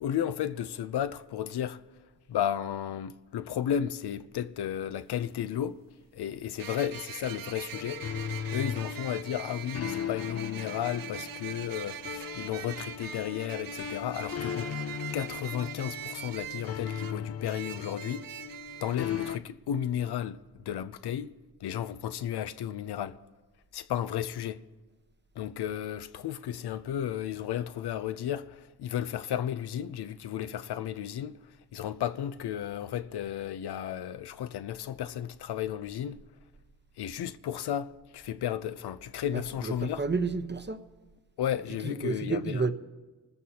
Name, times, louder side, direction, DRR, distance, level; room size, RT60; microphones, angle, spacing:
voice 1, 0.0-1.8 2.3-5.8 6.1-8.0 8.5-18.2 18.8-21.3 21.6-23.2 23.7-24.6 25.4-31.4 31.7-36.2 37.0-40.1 41.4-42.6, left 10 dB, 90° left, 0.6 m, -33 dB
sound 1, 5.0-5.1 6.6-19.4, right 10 dB, 60° right, 0.6 m, -42 dB
sound 2, 7.7-19.4, left 8 dB, 40° left, 0.4 m, -38 dB
voice 2, 39.3-40.8 41.8-42.7, right 4 dB, 30° right, 0.9 m, -31 dB
24.5 x 14.0 x 2.9 m
cardioid pair, 75°, 38 cm